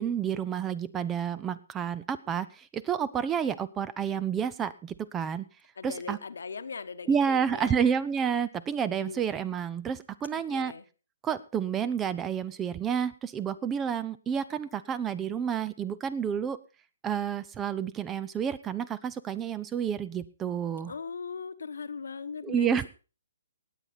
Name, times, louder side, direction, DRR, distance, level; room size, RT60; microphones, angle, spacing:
voice 1, 0.0-5.5 5.8-6.2 7.1-10.7 11.2-16.6 17.0-20.9 22.4-22.9, right 7 dB, 15° right, 17 dB, 0.5 m, -30 dB
voice 2, 5.8-7.9 8.9-9.2 10.3-10.8 20.9-22.9, left 5 dB, 65° left, 11 dB, 1.0 m, -39 dB
18.0 x 8.5 x 4.1 m, 0.34 s
figure-of-eight pair, 130°, 0 cm